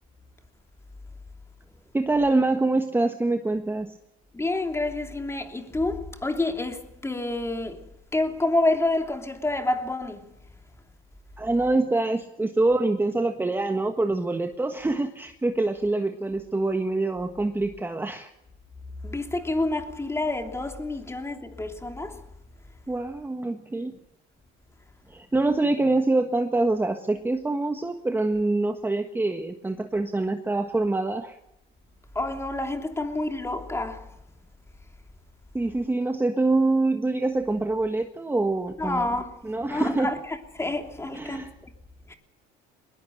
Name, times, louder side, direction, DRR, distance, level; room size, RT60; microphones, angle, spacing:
voice 1, 1.9-3.9 11.4-18.3 22.9-24.0 25.1-31.4 35.5-39.1 39.4-40.1 41.1-41.5, right 2 dB, 10° right, 1.4 m, -25 dB
voice 2, 4.3-10.4 19.0-22.3 32.1-34.1 38.8-39.3 39.6-41.7 42.1-42.2, left 2 dB, 10° left, 3.0 m, -28 dB
21.0 x 21.0 x 6.6 m
cardioid pair, 105°, 21 cm